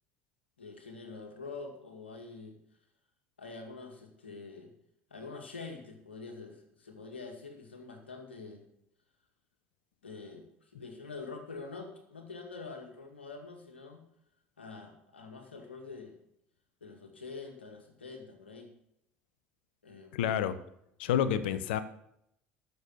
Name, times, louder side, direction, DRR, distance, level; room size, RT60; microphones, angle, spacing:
voice 1, 0.6-2.6 3.4-4.7 5.1-8.6 10.0-14.0 14.6-16.2 16.8-18.7 19.8-20.2, left 4 dB, 90° left, 4 dB, 2.2 m, -45 dB
voice 2, 20.1-20.6 21.0-21.8, left 9 dB, 75° left, 14 dB, 0.9 m, -29 dB
12.5 x 7.1 x 7.4 m, 0.76 s
hypercardioid pair, 70°, 6 cm